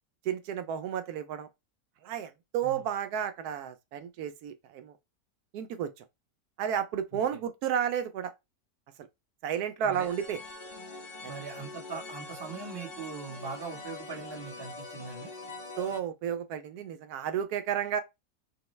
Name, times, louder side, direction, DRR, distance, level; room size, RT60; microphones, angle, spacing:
voice 1, 0.2-1.5 2.0-5.0 5.5-5.9 6.6-8.3 9.4-10.4 11.2-11.3 15.8-18.0, right 9 dB, 85° right, 1.1 m, -32 dB
voice 2, 9.8-10.1 11.3-15.3, right 4 dB, 20° right, 0.8 m, -41 dB
sound 1, 9.9-16.0, left 3 dB, 50° left, 0.4 m, -44 dB
5.3 x 2.1 x 3.1 m
omnidirectional pair, 1.6 m